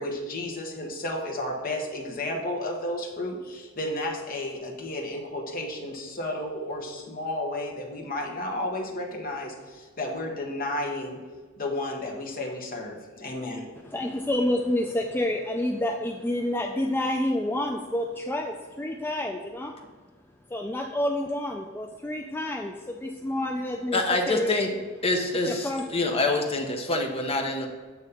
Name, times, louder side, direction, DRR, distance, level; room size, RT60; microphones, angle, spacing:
voice 1, 0.0-11.2 11.6-13.7, left 1 dB, 45° left, 0 dB, 1.2 m, -32 dB
voice 2, 13.8-19.8 20.5-24.6 25.5-25.9, left 1 dB, 10° left, 2 dB, 0.3 m, -29 dB
voice 3, 23.9-24.7 25.0-27.7, left 2 dB, 30° left, 3 dB, 0.9 m, -26 dB
8.1 x 3.1 x 5.5 m, 1.4 s
head